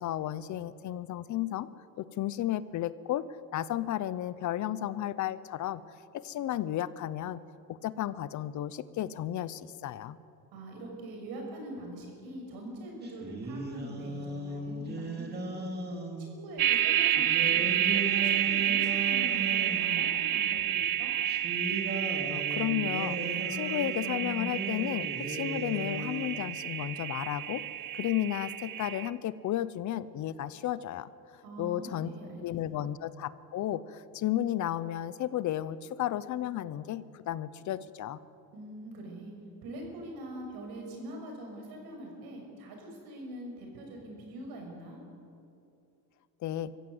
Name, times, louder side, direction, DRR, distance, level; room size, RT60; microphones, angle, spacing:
voice 1, 0.0-1.7 2.0-3.2 3.5-5.8 6.1-7.4 7.8-10.2 22.3-27.6 27.9-31.1 31.6-32.1 32.4-38.2 46.4-46.7, left 12 dB, 55° left, 17 dB, 0.8 m, -33 dB
voice 2, 10.5-15.7 16.2-17.7 18.1-21.1 31.4-32.4 32.7-32.8 38.5-39.3 39.6-45.0, right 1 dB, 85° right, 1 dB, 6.2 m, -43 dB
sound 1, 13.0-16.3 17.2-20.1 21.3-26.5, right 2 dB, 25° right, 2.6 m, -37 dB
sound 2, 16.6-29.1, right 12 dB, 60° right, 1.0 m, -30 dB
24.5 x 15.0 x 8.0 m, 2.6 s
cardioid pair, 150°, 36 cm